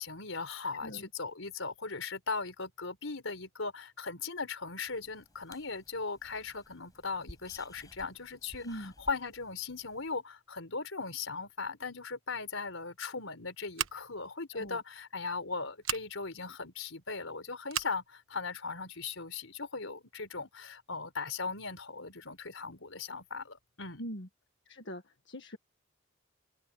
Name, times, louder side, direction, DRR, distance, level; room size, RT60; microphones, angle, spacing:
voice 1, 0.0-24.0, left 4 dB, 80° left, 4.6 m, -38 dB
voice 2, 0.6-1.1 8.6-8.9 14.5-14.8 24.0-24.3 24.6-25.6, equal, 60° left, 1.7 m, -42 dB
sound 1, 4.9-10.1, left 1 dB, 20° left, 7.0 m, -56 dB
Scissors, 13.7-14.3 15.8-16.1 17.7-18.0, right 11 dB, 85° right, 1.3 m, -35 dB
head